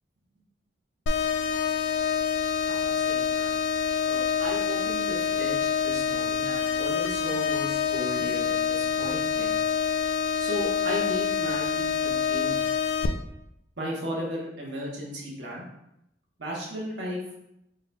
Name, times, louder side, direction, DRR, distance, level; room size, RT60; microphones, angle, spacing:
sound 1, 1.1-13.1, left 7 dB, 75° left, 0.3 m, -26 dB
voice 1, 2.7-3.6 4.0-9.5 10.4-12.6 13.8-15.6 16.4-17.4, equal, 65° right, -3 dB, 1.1 m, -35 dB
4.1 x 3.9 x 2.2 m, 0.81 s
head